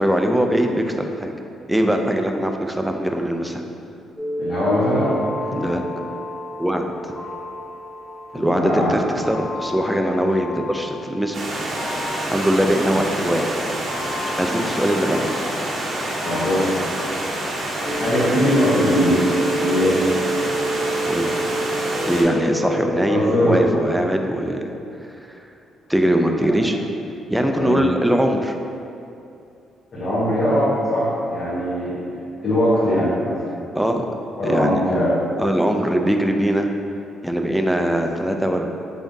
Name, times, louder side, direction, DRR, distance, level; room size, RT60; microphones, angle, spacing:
voice 1, 0.0-1.3 1.7-3.6 5.5-5.8 6.6-6.9 8.3-11.4 12.3-13.6 14.4-15.4 21.0-21.4 22.1-24.7 25.3-25.5 25.9-26.8 27.3-28.5 33.7-34.1 34.4-34.8 35.4-36.7 37.2-38.8, equal, 5° right, 4 dB, 0.3 m, -21 dB
sound 1, 4.2-23.6, equal, 25° left, 1.0 m, -30 dB
voice 2, 4.4-5.1 5.5-5.6 8.3-8.9 12.9-13.1 16.2-17.2 17.9-19.3 19.6-20.0 23.1-23.6 27.5-27.8 29.9-32.0 32.4-33.4 34.3-35.1, equal, 50° left, -12 dB, 1.1 m, -21 dB
Stream, 11.3-22.2, right 1 dB, 55° right, 0.6 m, -27 dB
3.6 x 3.5 x 2.7 m, 2.6 s
cardioid pair, 90°, 0 cm